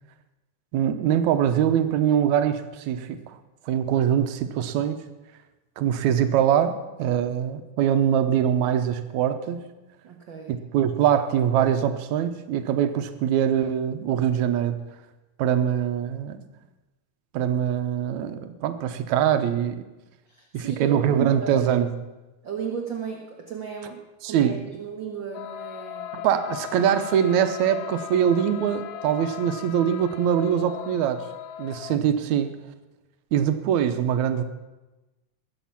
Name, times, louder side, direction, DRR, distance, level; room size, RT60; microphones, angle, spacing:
voice 1, 0.7-3.4 3.7-5.0 5.8-9.7 10.5-14.8 15.4-16.5 17.3-19.8 20.5-21.9 24.2-24.6 26.1-31.2 31.6-32.6 33.3-34.4, right 9 dB, 75° right, 9 dB, 2.2 m, -23 dB
voice 2, 10.0-10.5 20.3-21.7 22.4-26.1 32.3-32.4, right 6 dB, 55° right, 1 dB, 1.5 m, -34 dB
sound 1, 25.3-32.0, left 12 dB, 75° left, 1.5 m, -38 dB
21.0 x 8.0 x 5.9 m, 1.1 s
omnidirectional pair, 3.4 m